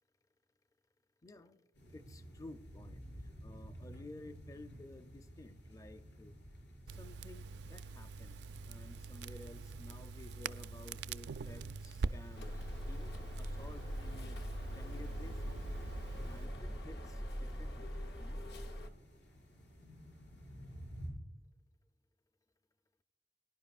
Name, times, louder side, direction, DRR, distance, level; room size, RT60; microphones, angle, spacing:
voice 1, 1.2-1.6 1.9-3.0 3.4-6.4 6.9-8.4 8.7-14.4 14.7-15.6 16.2-17.9 18.2-18.5, left 2 dB, 20° left, 10 dB, 0.5 m, -54 dB
sound 1, 1.7-21.1, equal, 85° left, 5.6 m, -54 dB
Crackle, 6.9-16.5, right 4 dB, 70° right, 0.4 m, -45 dB
sound 2, 12.3-18.9, equal, 65° left, 1.1 m, -42 dB
23.0 x 11.0 x 2.4 m, 0.87 s
head